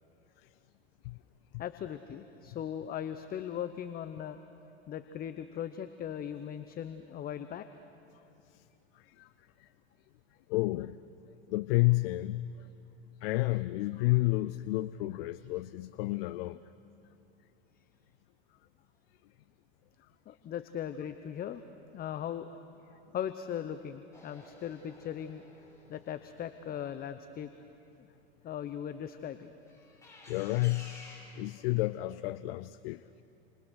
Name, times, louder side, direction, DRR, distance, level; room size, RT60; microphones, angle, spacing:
voice 1, 1.6-4.4 4.9-7.7 20.3-21.6 21.9-22.5 23.1-25.4 25.9-27.5 28.0-28.1 28.4-29.4, left 9 dB, 30° left, 10 dB, 0.9 m, -38 dB
voice 2, 8.9-9.3 9.6-9.7 10.5-11.0 11.5-12.7 13.2-16.6 30.3-31.0 31.4-33.0, left 19 dB, 60° left, 15 dB, 0.6 m, -31 dB
sound 1, 24.1-27.8 29.7-31.2, left 2 dB, 10° left, 7.7 m, -54 dB
29.5 x 26.5 x 6.4 m, 2.8 s
hypercardioid pair, 115°, 32 cm